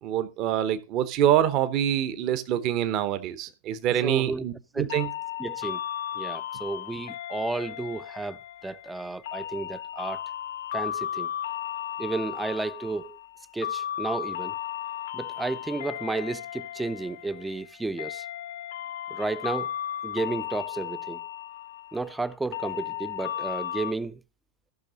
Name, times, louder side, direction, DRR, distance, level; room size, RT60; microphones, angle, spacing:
voice 1, 0.0-5.1, right 11 dB, 40° right, 0.9 m, -25 dB
voice 2, 4.0-4.5 4.7-4.9 5.4-5.8 6.2-8.4 8.6-10.2 10.7-11.3 12.0-13.2 13.5-14.5 15.1-18.3 19.1-19.7 20.0-21.2 21.9-24.2, right 3 dB, 10° right, 0.4 m, -32 dB
sound 1, 4.9-23.9, left 11 dB, 60° left, 0.6 m, -35 dB
14.5 x 6.0 x 3.9 m
figure-of-eight pair, 90°, 0 cm